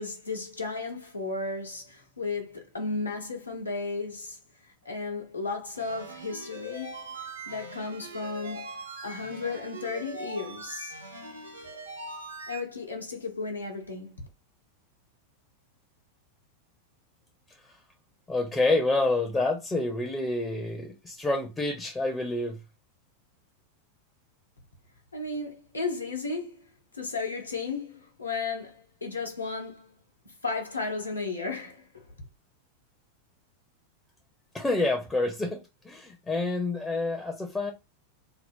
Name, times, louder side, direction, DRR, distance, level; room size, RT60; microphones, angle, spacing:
voice 1, 0.0-8.7 9.0-10.9 12.5-14.2 25.1-26.6 26.9-30.0 30.4-32.1, left 3 dB, 80° left, 0.9 m, -34 dB
sound 1, 5.8-12.6, right 2 dB, 80° right, 0.7 m, -41 dB
voice 2, 18.3-22.6 34.5-37.7, left 2 dB, 10° left, 0.5 m, -28 dB
2.7 x 2.0 x 3.5 m
figure-of-eight pair, 90°, 0 cm